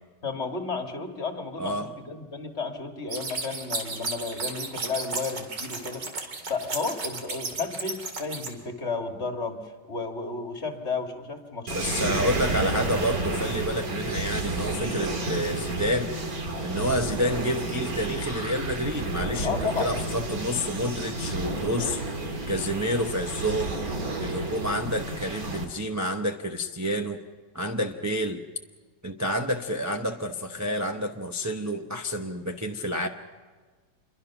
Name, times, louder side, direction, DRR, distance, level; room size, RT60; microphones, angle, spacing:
voice 1, 0.2-6.1 6.5-12.3 12.6-13.4 19.4-20.0, left 4 dB, 40° left, 4 dB, 2.3 m, -33 dB
voice 2, 1.6-1.9 11.7-16.1 16.6-22.0 22.5-23.8 24.2-27.2 27.5-28.4 29.0-33.1, equal, 15° right, 3 dB, 0.6 m, -29 dB
sound 1, 3.1-8.5, right 3 dB, 85° right, 3.0 m, -33 dB
sound 2, 11.7-25.6, right 2 dB, 55° right, 2.8 m, -31 dB
27.0 x 23.0 x 6.0 m, 1.4 s
omnidirectional pair, 1.9 m